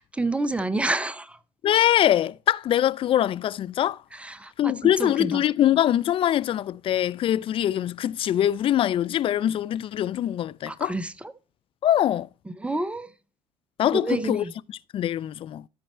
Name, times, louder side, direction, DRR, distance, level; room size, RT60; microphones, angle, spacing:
voice 1, 0.0-1.4 4.1-5.4 10.7-11.1 12.6-13.1 13.9-14.5, right 2 dB, 10° right, 0.8 m, -29 dB
voice 2, 1.6-4.0 4.6-10.9 11.8-12.3 13.8-15.7, left 11 dB, 40° left, 0.4 m, -23 dB
13.0 x 4.3 x 4.3 m
hypercardioid pair, 65°, 13 cm